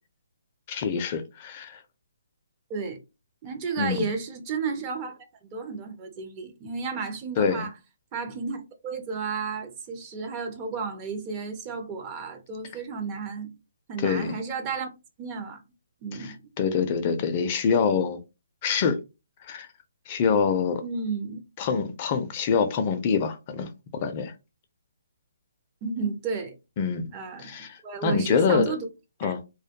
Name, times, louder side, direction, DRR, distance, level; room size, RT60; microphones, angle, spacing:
voice 1, 0.7-1.8 3.8-4.1 7.4-7.7 14.0-14.4 16.2-18.2 18.6-19.0 19.5-19.7 20.1-20.8 21.6-24.3 26.8-27.1 27.4-28.7 29.2-29.4, left 6 dB, 35° left, 0.3 m, -25 dB
voice 2, 3.4-5.2 5.5-7.7 8.1-13.5 13.9-14.9 15.2-15.6 16.0-16.4 20.8-21.4 25.8-26.6 27.1-28.9 29.2-29.3, right 5 dB, 25° right, 0.4 m, -32 dB
2.2 x 2.1 x 2.7 m
hypercardioid pair, 150°, 0 cm